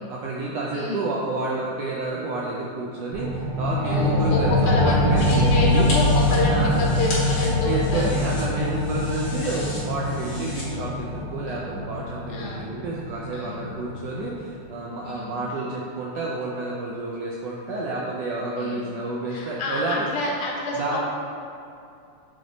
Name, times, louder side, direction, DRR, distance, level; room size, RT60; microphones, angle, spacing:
voice 1, 0.0-5.9 6.3-6.8 7.7-20.1 20.8-21.0, right 2 dB, 80° right, -4 dB, 1.5 m, -30 dB
voice 2, 0.7-1.1 3.8-8.0 11.5-11.8 12.3-12.7 13.3-13.7 15.0-15.4 18.6-19.0 19.3-21.0, left 2 dB, 80° left, -3 dB, 2.5 m, -28 dB
sound 1, 3.1-14.2, left 1 dB, 45° right, 1.5 m, -24 dB
sound 2, 5.2-10.6, left 1 dB, 55° left, 2.6 m, -36 dB
8.6 x 3.5 x 3.9 m, 2.6 s
omnidirectional pair, 3.5 m